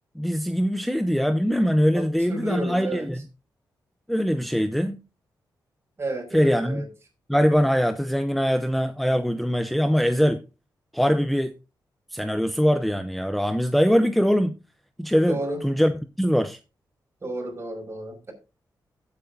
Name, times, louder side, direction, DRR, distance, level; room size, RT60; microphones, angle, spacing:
voice 1, 0.2-3.3 4.1-5.0 6.3-6.9 7.3-10.4 10.9-11.5 12.1-14.6 15.0-15.9 16.2-16.6, equal, ahead, 0.7 m, -22 dB
voice 2, 1.9-3.1 6.0-6.9 15.3-15.6 17.2-18.3, right 1 dB, 35° right, 5.4 m, -32 dB
16.0 x 8.5 x 2.7 m
cardioid pair, 100°, 8 cm